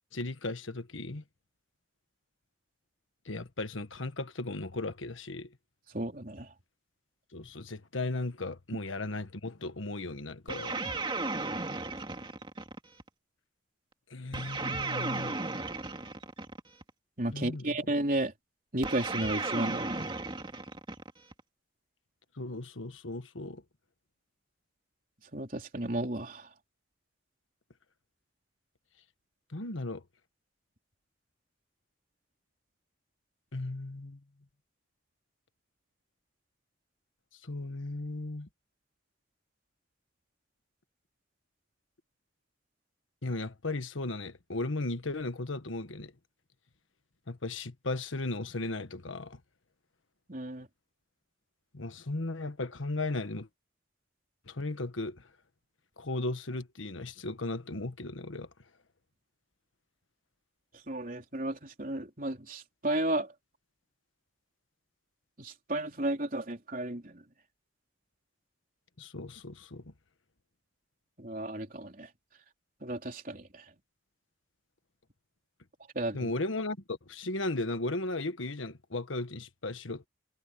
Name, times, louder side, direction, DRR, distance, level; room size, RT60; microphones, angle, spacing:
voice 1, 0.1-1.2 3.2-5.5 7.3-10.8 14.1-15.4 17.3-17.8 22.4-23.6 29.5-30.0 33.5-34.2 37.4-38.5 43.2-46.1 47.3-49.4 51.7-53.5 54.5-55.3 56.0-58.5 69.0-69.9 76.1-80.1, left 2 dB, 90° left, 1.5 m, -36 dB
voice 2, 5.9-6.5 17.2-18.3 18.7-20.1 25.3-26.5 50.3-50.7 60.9-63.3 65.4-67.2 71.2-72.1 72.8-73.6 76.0-76.3, right 1 dB, 45° right, 3.7 m, -33 dB
sound 1, 10.5-13.1 14.3-16.9 18.8-21.4, right 3 dB, 25° right, 2.4 m, -35 dB
head